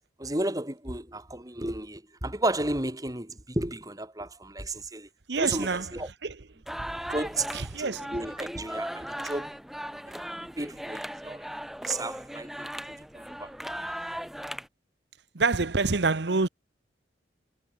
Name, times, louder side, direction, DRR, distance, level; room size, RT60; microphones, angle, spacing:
voice 1, 0.2-5.1 5.4-6.1 7.1-9.5 10.1-10.3 10.6-11.5 11.8-12.7 13.1-13.5, right 2 dB, 20° right, 3.8 m, -33 dB
voice 2, 5.3-5.9 6.2-6.4 6.8-6.9 7.5-8.1 15.3-16.5, right 4 dB, 75° right, 1.0 m, -27 dB
sound 1, 6.7-14.7, equal, ahead, 1.8 m, -38 dB
head